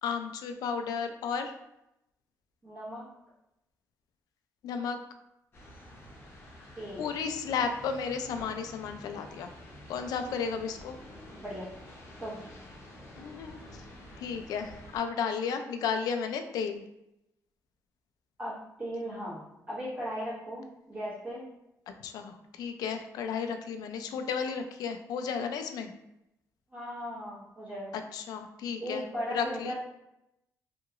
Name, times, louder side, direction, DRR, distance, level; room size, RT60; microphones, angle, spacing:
voice 1, 0.0-1.5 4.6-5.0 7.0-9.5 9.9-11.0 13.2-13.6 14.2-16.8 21.9-25.9 27.9-29.0 29.3-29.7, left 6 dB, 85° left, 7 dB, 0.3 m, -33 dB
voice 2, 2.6-3.0 6.8-7.1 11.4-11.7 12.2-12.4 18.4-21.4 26.7-27.9 28.8-29.7, equal, 25° right, -8 dB, 1.2 m, -37 dB
sound 1, 5.5-15.0, left 1 dB, 40° left, 0.8 m, -49 dB
2.8 x 2.8 x 2.4 m, 0.84 s
cardioid pair, 165°, 6 cm